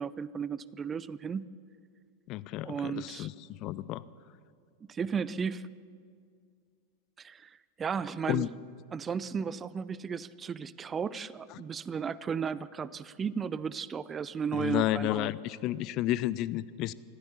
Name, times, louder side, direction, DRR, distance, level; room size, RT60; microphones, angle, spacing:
voice 1, 0.0-1.5 2.6-3.3 4.9-5.6 7.2-8.5 8.9-15.3, right 6 dB, 20° right, 0.5 m, -34 dB
voice 2, 2.3-3.3 3.6-4.0 8.3-8.5 14.5-16.9, left 15 dB, 40° left, 0.5 m, -31 dB
25.5 x 14.5 x 7.0 m
figure-of-eight pair, 90°, 0 cm